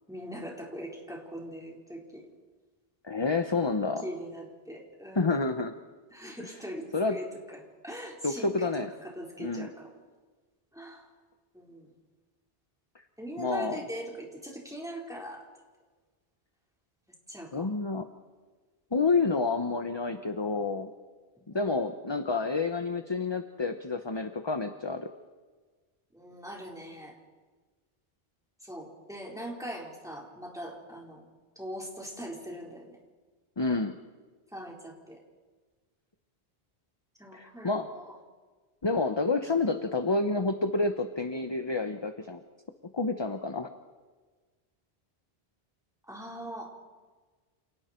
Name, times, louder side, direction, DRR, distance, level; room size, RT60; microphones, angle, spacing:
voice 1, 0.1-2.3 4.0-5.3 6.1-10.0 10.7-11.1 11.5-11.9 13.2-15.4 17.3-17.7 21.4-21.7 26.1-27.1 28.6-31.2 31.6-33.0 34.5-35.2 37.2-38.1 46.1-46.7, equal, 5° right, -2 dB, 4.5 m, -41 dB
voice 2, 3.0-4.0 5.1-5.7 6.9-7.2 8.2-8.9 9.4-9.7 13.4-13.8 17.5-18.1 18.9-20.9 21.5-25.1 33.6-34.0 37.3-37.9 38.8-42.4 42.9-43.7, left 3 dB, 25° left, 7 dB, 1.0 m, -29 dB
29.5 x 28.5 x 4.5 m, 1.4 s
omnidirectional pair, 1.0 m